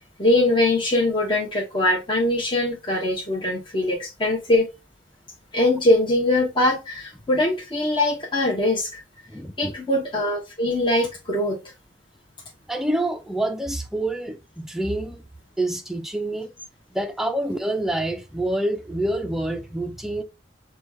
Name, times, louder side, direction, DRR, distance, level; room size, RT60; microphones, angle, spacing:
voice 1, 0.2-4.7 5.5-9.0 9.6-11.6, left 1 dB, 25° left, 0.8 m, -22 dB
voice 2, 9.3-9.7 12.7-15.2 15.6-16.5 16.9-20.2, right 1 dB, ahead, 0.4 m, -27 dB
5.9 x 2.3 x 3.3 m
head